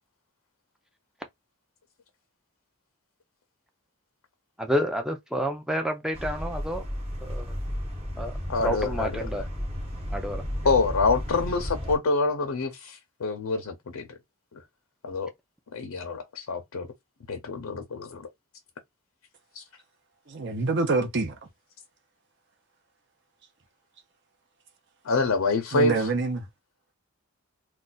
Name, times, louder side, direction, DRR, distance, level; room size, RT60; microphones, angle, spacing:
voice 1, 4.6-6.8 7.2-7.5 8.2-9.4 10.1-10.4, equal, 5° right, 0.4 m, -29 dB
sound 1, 6.1-12.0, equal, 30° right, 0.9 m, -33 dB
voice 2, 8.5-9.1 10.6-14.0 14.5-14.6 15.0-15.3 15.7-16.9 17.3-18.2 19.5-19.6 25.0-25.9, left 3 dB, 90° left, 0.6 m, -26 dB
voice 3, 20.3-21.3 25.7-26.5, right 3 dB, 50° right, 0.7 m, -26 dB
2.4 x 2.2 x 3.9 m
head